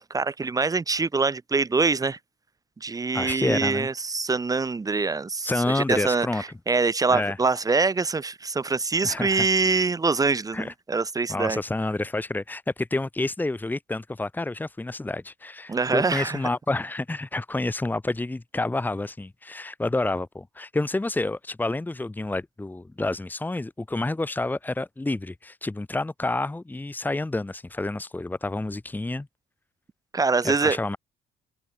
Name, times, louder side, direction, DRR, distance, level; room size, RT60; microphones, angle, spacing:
voice 1, 0.1-2.2 2.8-6.3 6.7-11.6 15.7-16.4 30.1-30.8, right 4 dB, 20° right, 1.8 m, -24 dB
voice 2, 3.1-3.9 5.4-6.4 7.1-7.4 9.0-9.5 10.5-10.7 11.3-29.3 30.4-31.0, left 2 dB, 10° left, 1.9 m, -29 dB
open air
cardioid pair, 110°, 17 cm